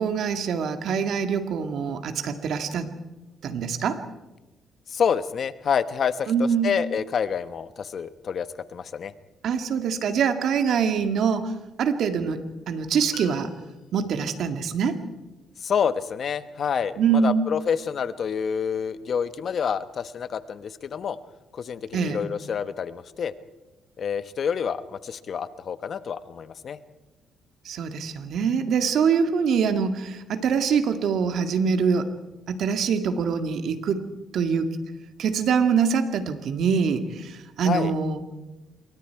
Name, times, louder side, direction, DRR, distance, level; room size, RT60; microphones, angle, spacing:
voice 1, 0.0-2.9 3.4-4.0 6.3-6.7 9.4-11.5 11.8-13.5 13.9-15.0 17.0-17.4 21.9-22.2 27.7-32.1 32.5-34.0 34.3-34.8 35.2-38.2, right 6 dB, 70° right, 8 dB, 2.0 m, -24 dB
voice 2, 4.9-9.1 15.6-21.2 21.5-23.3 24.0-26.8 37.6-37.9, left 7 dB, 55° left, 13 dB, 1.0 m, -28 dB
sound 1, 13.1-14.2, left 6 dB, 90° left, 5.3 m, -45 dB
27.0 x 23.0 x 4.7 m, 1.1 s
cardioid pair, 90°, 0 cm